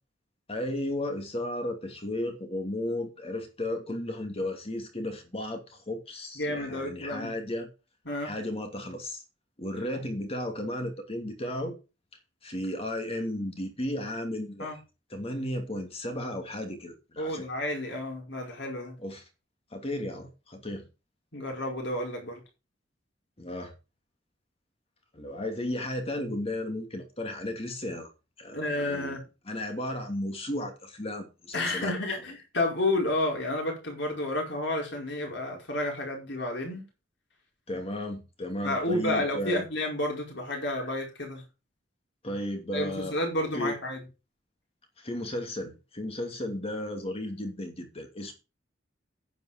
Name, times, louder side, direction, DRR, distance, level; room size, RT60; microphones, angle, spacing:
voice 1, 0.5-7.7 8.2-9.2 9.6-11.8 12.4-14.7 15.1-17.5 19.0-19.3 19.7-20.8 23.4-23.7 25.1-28.1 28.4-29.2 29.5-31.9 37.7-39.7 42.2-43.2 43.5-43.7 45.0-48.3, left 1 dB, 30° left, 2.7 m, -34 dB
voice 2, 6.4-7.3 8.0-8.3 9.9-10.0 14.6-14.8 17.2-19.0 21.3-22.4 28.5-29.2 31.5-36.8 38.6-41.4 42.7-44.0, left 1 dB, 65° left, 5.1 m, -31 dB
10.0 x 9.5 x 5.1 m
head